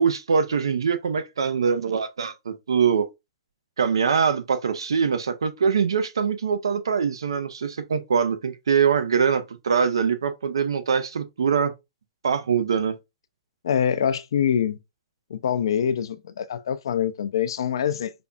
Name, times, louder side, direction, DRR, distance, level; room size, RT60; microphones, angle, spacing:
voice 1, 0.0-3.1 3.8-11.7 12.2-13.0, right 6 dB, 80° right, 0.5 m, -23 dB
voice 2, 13.6-14.8 15.3-18.1, left 8 dB, 70° left, 0.4 m, -24 dB
5.1 x 2.3 x 2.4 m
hypercardioid pair, 110°, 3 cm